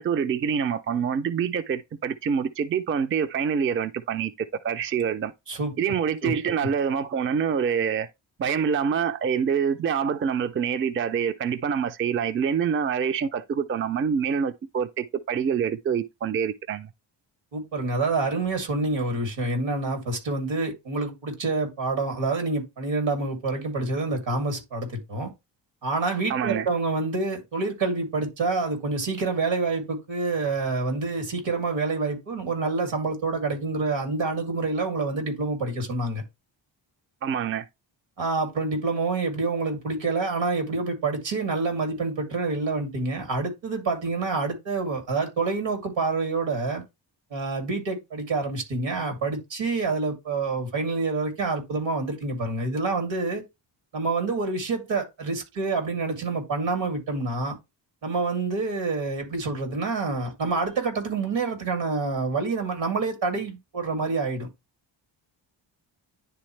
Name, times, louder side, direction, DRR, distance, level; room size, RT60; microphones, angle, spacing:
voice 1, 0.0-5.3 5.8-8.1 8.4-16.9 26.3-26.7 37.2-37.7, right 7 dB, 30° right, 0.4 m, -26 dB
voice 2, 17.5-25.3 25.8-36.2 38.2-46.8 47.3-53.4 53.9-57.6 58.0-64.5, right 3 dB, 85° right, 2.7 m, -27 dB
10.0 x 3.5 x 3.2 m
wide cardioid pair, 140°, 44 cm